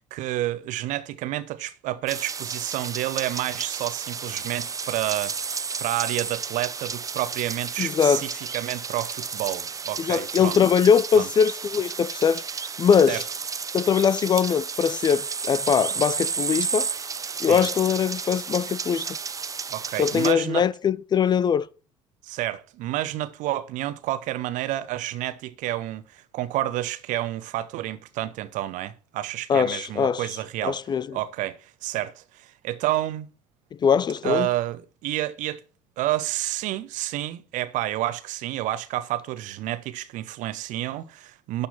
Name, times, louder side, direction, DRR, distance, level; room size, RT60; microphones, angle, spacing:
voice 1, 0.0-10.6 11.2-11.3 13.1-13.2 17.4-17.7 19.7-20.6 22.2-30.8 31.1-33.3 34.2-35.6 36.0-41.7, right 15 dB, 50° right, 0.9 m, -30 dB
sound 1, 2.1-20.3, right 5 dB, 20° right, 0.6 m, -32 dB
voice 2, 7.8-8.2 10.0-12.4 12.8-13.2 13.7-16.9 17.4-19.1 20.0-21.7 29.5-30.3 30.6-31.1 33.8-34.5, left 7 dB, 25° left, 0.4 m, -21 dB
12.0 x 4.3 x 7.2 m
figure-of-eight pair, 60°, 16 cm